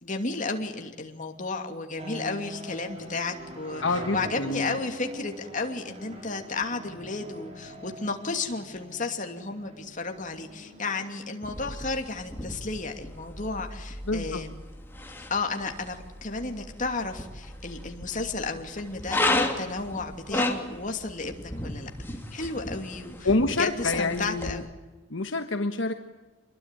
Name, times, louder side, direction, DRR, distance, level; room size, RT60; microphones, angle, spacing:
voice 1, 0.0-3.8 4.1-14.5 15.3-21.9 22.3-23.3 23.6-24.7, left 3 dB, 40° left, 4 dB, 2.8 m, -33 dB
sound 1, 2.0-11.1, right 1 dB, 30° right, 5.4 m, -43 dB
voice 2, 3.8-4.8 14.0-14.4 23.2-24.6 25.1-25.9, left 2 dB, 65° left, 6 dB, 1.4 m, -27 dB
sound 2, 11.4-24.5, left 2 dB, 10° left, 2.7 m, -34 dB
26.5 x 21.5 x 9.3 m, 1.2 s
head